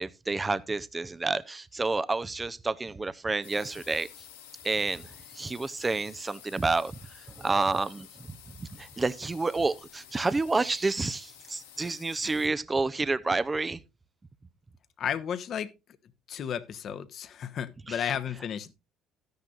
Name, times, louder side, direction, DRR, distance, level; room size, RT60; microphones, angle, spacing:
voice 1, 0.0-4.1 4.6-5.0 5.4-6.9 7.4-8.1 8.6-13.8 17.9-18.4, right 3 dB, 20° right, 0.7 m, -29 dB
sound 1, 3.4-12.5, left 9 dB, 90° left, 2.7 m, -51 dB
voice 2, 15.0-15.7 16.3-18.7, left 8 dB, 55° left, 1.1 m, -33 dB
13.0 x 10.5 x 2.5 m
hypercardioid pair, 65°, 0 cm